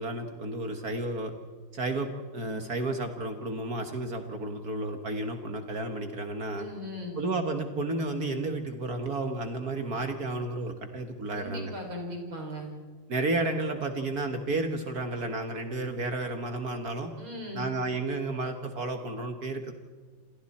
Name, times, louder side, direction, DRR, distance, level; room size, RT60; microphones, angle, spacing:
voice 1, 0.0-1.3 1.7-6.7 7.2-11.7 13.1-17.1 17.5-19.7, right 2 dB, 50° right, 6 dB, 1.8 m, -32 dB
voice 2, 6.6-7.2 11.3-12.7 17.2-17.8, left 1 dB, 80° right, 1 dB, 5.6 m, -38 dB
28.5 x 27.0 x 4.3 m, 1.5 s
omnidirectional pair, 2.2 m